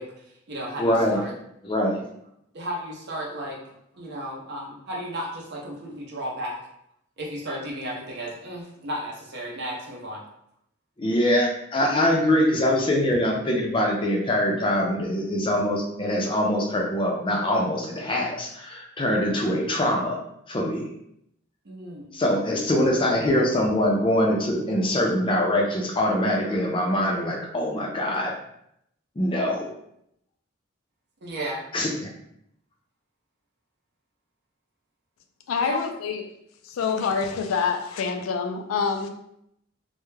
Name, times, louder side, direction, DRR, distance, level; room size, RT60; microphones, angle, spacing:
voice 1, 0.0-1.3 2.5-3.6 3.9-6.6 7.2-10.2 21.6-22.1 31.2-31.6 35.6-35.9, equal, 55° right, -3 dB, 0.5 m, -34 dB
voice 2, 0.8-1.2 1.6-2.1 11.0-20.2 20.5-20.9 22.1-28.3 29.2-29.7 31.7-31.9, left 1 dB, 25° left, 0 dB, 0.4 m, -23 dB
voice 3, 35.5-36.2 36.6-39.1, left 5 dB, 90° left, 5 dB, 0.3 m, -26 dB
2.2 x 2.1 x 3.1 m, 0.76 s
head